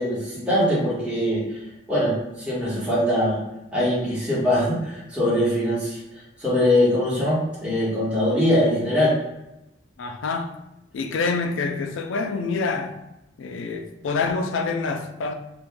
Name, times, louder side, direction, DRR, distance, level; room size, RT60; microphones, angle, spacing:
voice 1, 0.0-1.4 1.9-3.4 3.7-6.0 6.4-9.1, left 1 dB, 5° right, 1.3 m, -22 dB
voice 2, 10.0-10.6 10.9-13.0 13.4-15.3, left 4 dB, 80° left, 0.4 m, -26 dB
3.0 x 2.5 x 3.5 m
head